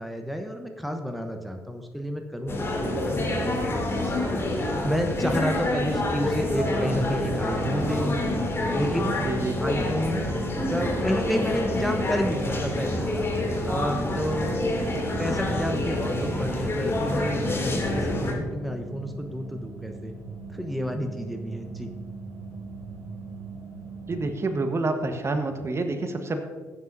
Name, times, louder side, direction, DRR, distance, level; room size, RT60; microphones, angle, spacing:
voice 1, 0.0-8.2 8.7-9.2 9.6-10.2 10.7-13.3 13.6-14.6 15.2-20.1 20.5-21.9, equal, ahead, 5 dB, 1.1 m, -30 dB
sound 1, 2.5-18.3, left 1 dB, 30° left, 2.9 m, -27 dB
sound 2, 5.4-24.3, right 4 dB, 80° left, 3.0 m, -40 dB
voice 2, 9.2-9.5 24.1-26.4, right 2 dB, 35° right, 6 dB, 1.3 m, -28 dB
16.0 x 9.3 x 2.8 m, 1.5 s
hypercardioid pair, 50°, 8 cm